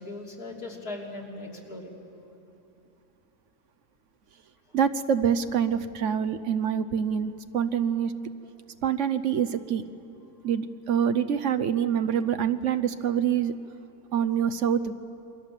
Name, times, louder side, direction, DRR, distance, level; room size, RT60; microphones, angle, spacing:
voice 1, 0.0-1.9 4.7-4.8, left 2 dB, 85° left, -2 dB, 3.9 m, -39 dB
voice 2, 4.7-8.1 8.8-9.8 10.4-13.5 14.1-14.9, right 8 dB, 60° right, 11 dB, 1.1 m, -26 dB
28.0 x 23.5 x 7.5 m, 2.8 s
omnidirectional pair, 1.6 m